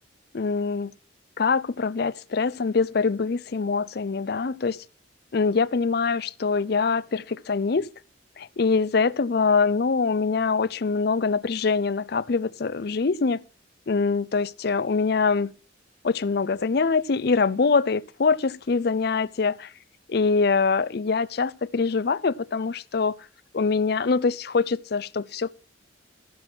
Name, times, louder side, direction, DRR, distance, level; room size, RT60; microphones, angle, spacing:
voice 1, 0.3-0.9 1.4-4.8 5.3-7.9 8.4-13.4 13.9-15.5 16.0-19.7 20.1-23.2 23.5-25.5, left 4 dB, 55° left, 0.5 m, -24 dB
14.0 x 6.1 x 6.1 m
head